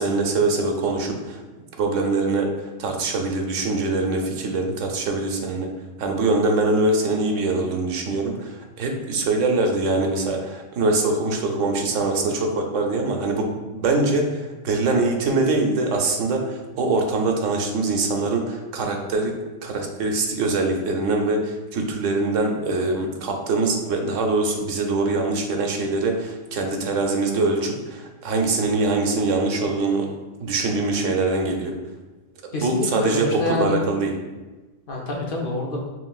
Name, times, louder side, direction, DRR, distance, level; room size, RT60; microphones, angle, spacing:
voice 1, 0.0-1.4 1.8-5.7 6.0-19.3 19.6-30.1 30.4-31.7 32.6-34.1, right 3 dB, 90° right, 3 dB, 1.0 m, -23 dB
voice 2, 32.5-33.8 34.9-35.9, left 1 dB, 55° left, -1 dB, 0.8 m, -27 dB
6.1 x 2.7 x 2.3 m, 1.2 s
omnidirectional pair, 1.2 m